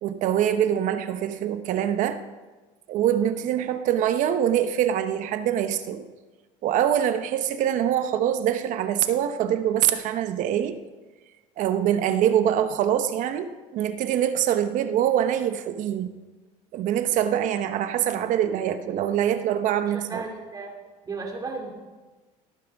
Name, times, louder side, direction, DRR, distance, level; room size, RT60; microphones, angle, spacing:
voice 1, 0.0-2.2 2.9-6.0 6.6-10.8 11.6-16.2 16.7-20.2, right 10 dB, 60° right, 10 dB, 0.9 m, -24 dB
voice 2, 19.9-20.7 21.0-21.7, right 3 dB, 25° right, 2 dB, 2.5 m, -34 dB
17.5 x 9.3 x 3.5 m, 1.2 s
cardioid pair, 110°, 14 cm